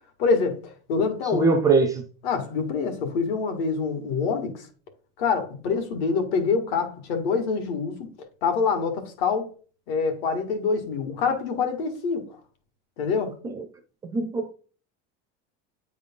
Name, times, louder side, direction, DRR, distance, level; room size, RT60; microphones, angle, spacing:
voice 1, 0.2-1.6 2.2-4.7 5.2-8.1 8.4-9.5 9.9-12.3 13.0-13.3, left 5 dB, 75° left, 2.0 m, -25 dB
voice 2, 1.3-2.0 13.4-13.7 14.1-14.5, right 4 dB, 10° right, 0.3 m, -22 dB
9.1 x 3.8 x 3.7 m
cardioid pair, 175°, 31 cm